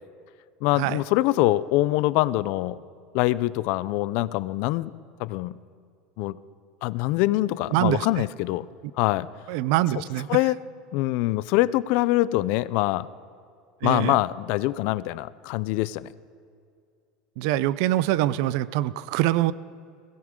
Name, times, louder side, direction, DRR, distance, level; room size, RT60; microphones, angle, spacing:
voice 1, 0.6-2.8 3.1-4.9 5.2-5.6 6.2-6.4 6.8-8.7 9.0-9.3 10.3-10.6 10.9-13.1 13.8-16.1, left 17 dB, 60° left, 18 dB, 0.5 m, -24 dB
voice 2, 7.7-8.1 9.5-10.3 13.8-14.2 17.4-19.5, right 15 dB, 70° right, 18 dB, 0.5 m, -24 dB
21.5 x 17.0 x 3.7 m, 2.3 s
supercardioid pair, 140°, 3 cm